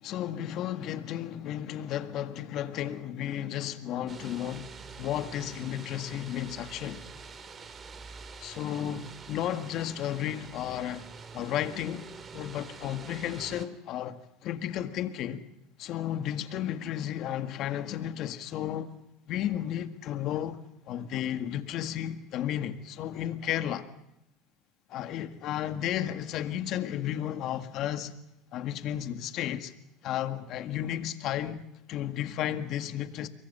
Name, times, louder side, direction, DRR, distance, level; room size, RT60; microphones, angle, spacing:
voice 1, 0.0-7.0 8.4-11.1 11.3-12.1 12.3-15.4 15.8-18.9 19.3-20.6 20.9-23.9 24.9-28.1 28.5-29.7 30.0-33.3, left 11 dB, 50° left, 1.8 m, -33 dB
sound 1, 4.1-13.7, right 5 dB, 30° right, 2.4 m, -46 dB
28.0 x 23.0 x 5.6 m
supercardioid pair, 120°, 0 cm